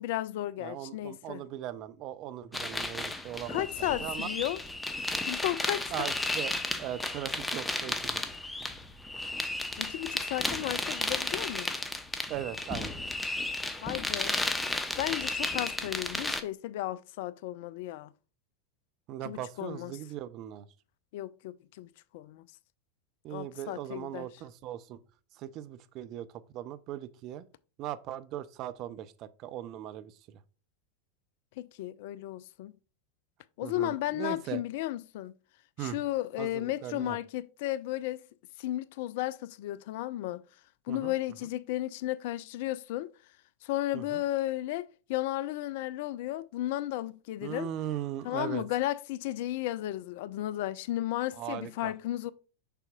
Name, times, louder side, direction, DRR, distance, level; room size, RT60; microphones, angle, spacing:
voice 1, 0.0-1.4 3.5-4.6 5.3-6.1 9.8-11.7 13.8-14.4 15.0-18.1 19.2-20.0 21.1-22.5 23.3-24.3 31.6-32.7 33.6-35.3 35.8-38.2 38.6-40.4 40.9-43.1 43.6-47.7 48.2-52.3, left 15 dB, 55° left, 0.4 m, -34 dB
voice 2, 0.6-4.3 5.9-6.5 6.8-8.2 12.3-13.0 19.1-20.7 23.2-25.0 25.4-27.5 27.8-30.4 33.6-34.6 35.8-36.0 36.4-37.2 40.9-41.1 43.9-44.2 47.4-48.6 51.4-51.9, right 12 dB, 45° right, 0.5 m, -39 dB
sound 1, 2.5-16.4, left 2 dB, 10° left, 0.8 m, -33 dB
6.8 x 5.8 x 2.4 m
figure-of-eight pair, 90°, 0 cm